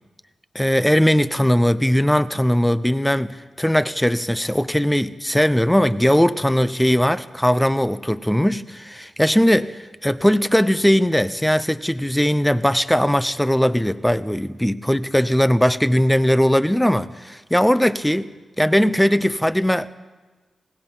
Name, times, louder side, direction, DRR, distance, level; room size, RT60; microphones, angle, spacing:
voice 1, 0.5-18.3 18.6-19.9, equal, 5° left, 0.7 m, -19 dB
26.0 x 18.5 x 5.6 m
wide cardioid pair, 120°, 0 cm